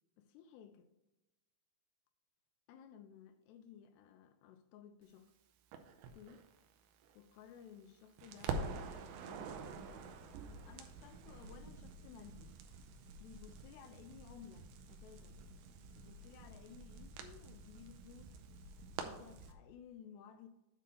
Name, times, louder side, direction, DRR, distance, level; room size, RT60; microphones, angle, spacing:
voice 1, 0.2-0.9 2.7-5.3 6.1-6.5 7.1-12.5 13.2-15.4 15.9-18.4 19.0-20.5, left 8 dB, 80° left, 2.6 m, -57 dB
Crackle, 5.7-7.9 8.2-19.5, right 4 dB, 85° right, 3.0 m, -47 dB
8.3 x 3.8 x 6.7 m
omnidirectional pair, 5.0 m